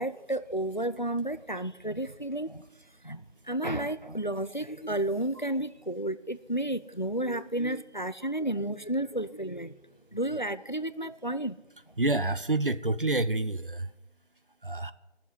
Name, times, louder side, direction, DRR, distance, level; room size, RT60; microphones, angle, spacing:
voice 1, 0.0-2.7 3.0-9.7 10.1-11.6, right 1 dB, 45° left, 0.4 m, -32 dB
voice 2, 12.0-13.9 14.6-14.9, right 2 dB, 50° right, 0.6 m, -28 dB
13.5 x 7.3 x 9.4 m
figure-of-eight pair, 180°, 34 cm